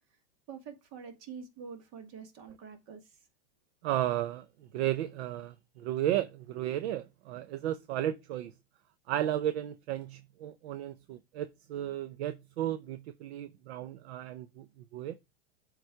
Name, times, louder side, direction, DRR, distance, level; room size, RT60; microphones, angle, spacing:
voice 1, 0.5-3.0, right 6 dB, 50° right, 1.9 m, -46 dB
voice 2, 3.8-4.5 4.7-8.5 9.1-14.7 14.9-15.1, right 12 dB, 70° right, 0.6 m, -34 dB
7.7 x 3.3 x 4.6 m
hypercardioid pair, 110°, 34 cm